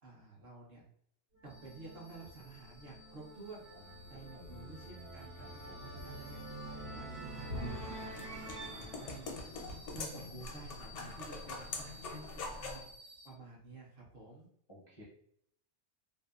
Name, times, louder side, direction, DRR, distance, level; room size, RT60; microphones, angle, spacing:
voice 1, 0.0-0.8 1.4-3.7 4.1-6.4 7.0-9.3 9.9-12.8 13.2-14.5, right 3 dB, 55° right, -3 dB, 0.9 m, -51 dB
sound 1, 1.3-10.4, right 1 dB, 85° right, 1.3 m, -46 dB
sound 2, 1.5-13.3, left 1 dB, 30° right, 0.3 m, -57 dB
voice 2, 3.7-4.8 5.3-6.0 14.7-15.0, left 1 dB, 35° left, -8 dB, 0.4 m, -57 dB
sound 3, 7.6-12.9, left 3 dB, 80° left, 0.9 m, -44 dB
2.7 x 2.1 x 2.3 m, 0.68 s
omnidirectional pair, 1.2 m